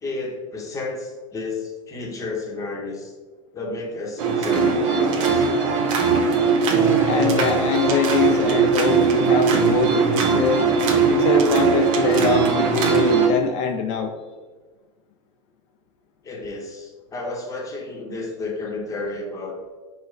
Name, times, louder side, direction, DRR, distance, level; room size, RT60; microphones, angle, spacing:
voice 1, 0.0-3.1 3.5-5.6 16.2-19.6, left 3 dB, 20° left, 0 dB, 0.9 m, -31 dB
sound 1, 4.2-13.3, right 5 dB, 70° right, 0.8 m, -19 dB
voice 2, 7.0-10.6 11.1-14.1, left 5 dB, 65° left, 4 dB, 0.4 m, -23 dB
4.5 x 2.2 x 4.4 m, 1.4 s
supercardioid pair, 120°, 17 cm